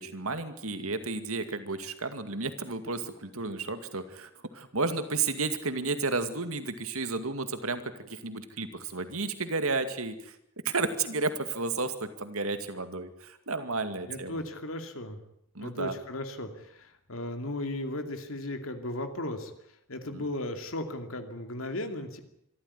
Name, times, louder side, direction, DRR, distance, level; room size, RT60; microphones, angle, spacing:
voice 1, 0.0-10.3 10.6-14.4 15.5-15.9 20.1-20.2, right 3 dB, 85° right, 9 dB, 2.3 m, -32 dB
voice 2, 14.1-15.2 15.6-19.5 19.9-22.2, left 1 dB, 70° left, 6 dB, 2.5 m, -36 dB
24.5 x 14.0 x 9.7 m, 0.77 s
head